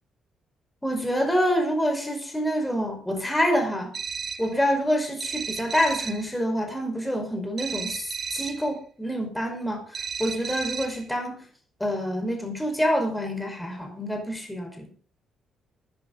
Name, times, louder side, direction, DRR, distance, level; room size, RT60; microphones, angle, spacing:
voice 1, 0.8-3.9 4.4-11.5 11.8-14.9, equal, 5° left, 3 dB, 5.4 m, -27 dB
sound 1, 3.9-4.6 5.2-6.3 7.6-8.7 9.9-11.1, right 5 dB, 40° right, 1.5 m, -34 dB
19.0 x 11.5 x 4.1 m, 0.42 s
cardioid pair, 90°, 0 cm